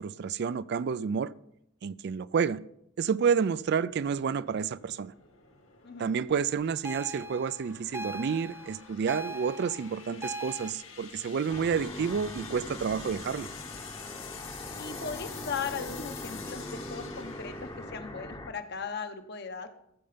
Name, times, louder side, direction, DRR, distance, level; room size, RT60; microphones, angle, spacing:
voice 1, 0.0-1.3 1.8-2.6 3.0-5.1 6.0-13.5, right 6 dB, 55° right, 0.4 m, -29 dB
sound 1, 3.5-18.9, left 7 dB, 80° left, 1.9 m, -48 dB
sound 2, 6.8-10.7, right 1 dB, 10° right, 0.6 m, -40 dB
sound 3, 11.5-18.5, left 1 dB, 20° left, 0.9 m, -41 dB
voice 2, 14.7-19.7, left 5 dB, 55° left, 1.0 m, -38 dB
14.5 x 6.8 x 5.1 m
head